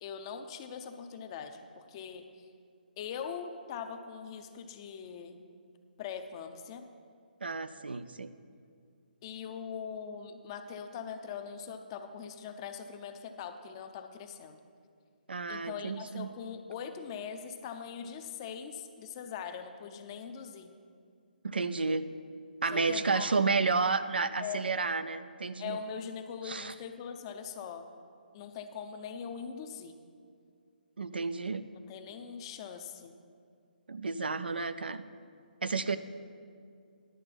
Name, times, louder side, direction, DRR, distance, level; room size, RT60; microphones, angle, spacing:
voice 1, 0.0-2.2 3.0-5.4 6.0-6.8 9.2-14.6 15.5-20.7 22.7-23.3 24.4-24.7 25.6-27.9 28.3-30.0 31.9-33.1, left 7 dB, 30° left, 7 dB, 0.7 m, -41 dB
voice 2, 7.4-8.3 15.3-16.3 21.4-22.0 22.6-25.8 26.4-26.7 31.0-31.7 33.9-35.0 35.6-36.0, right 4 dB, 85° right, 12 dB, 0.5 m, -31 dB
11.0 x 6.7 x 5.8 m, 2.3 s
figure-of-eight pair, 145°, 5 cm